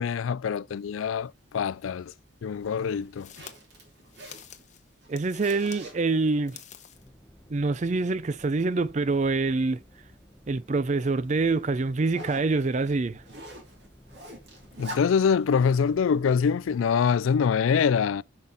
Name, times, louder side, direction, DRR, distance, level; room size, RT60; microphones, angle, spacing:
voice 1, 0.0-2.1 2.4-3.5 14.8-18.2, left 6 dB, 90° left, 0.4 m, -24 dB
Zipper (clothing), 0.8-17.2, equal, 55° right, 2.7 m, -49 dB
sound 1, 1.9-2.0 2.9-5.9 6.3-7.1, left 9 dB, 40° left, 0.9 m, -48 dB
voice 2, 5.1-6.6 7.5-9.8 10.5-13.2, right 3 dB, 35° right, 0.4 m, -25 dB
sound 2, 6.9-16.8, equal, 5° left, 1.0 m, -55 dB
10.5 x 5.7 x 3.5 m
head